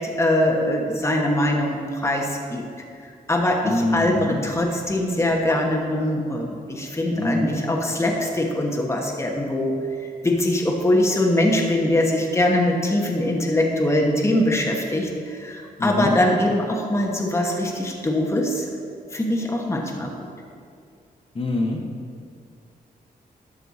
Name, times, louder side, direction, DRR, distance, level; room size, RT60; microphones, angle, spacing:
voice 1, 0.0-2.6 3.3-9.7 10.0-18.7 19.1-20.3, left 1 dB, 15° left, 0 dB, 1.2 m, -22 dB
voice 2, 3.6-4.4 7.1-7.5 15.8-16.1 21.3-21.8, left 1 dB, 35° left, 0 dB, 1.2 m, -24 dB
12.5 x 6.6 x 4.1 m, 2.3 s
cardioid pair, 100°, 16 cm